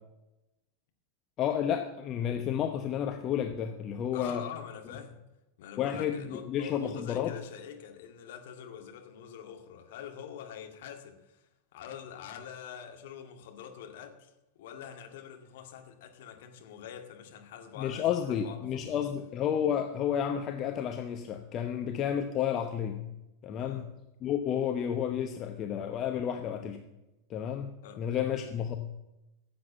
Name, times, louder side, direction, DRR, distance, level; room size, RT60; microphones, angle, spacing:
voice 1, 1.4-4.5 5.8-7.3 17.8-23.0 23.4-23.8 24.2-26.8 27.3-28.8, left 9 dB, 30° left, 5 dB, 1.0 m, -31 dB
voice 2, 4.1-5.2 5.6-19.1 23.6-23.9 27.8-28.0, left 8 dB, 55° left, 4 dB, 2.1 m, -45 dB
16.0 x 7.7 x 7.3 m, 0.95 s
figure-of-eight pair, 90°, 0 cm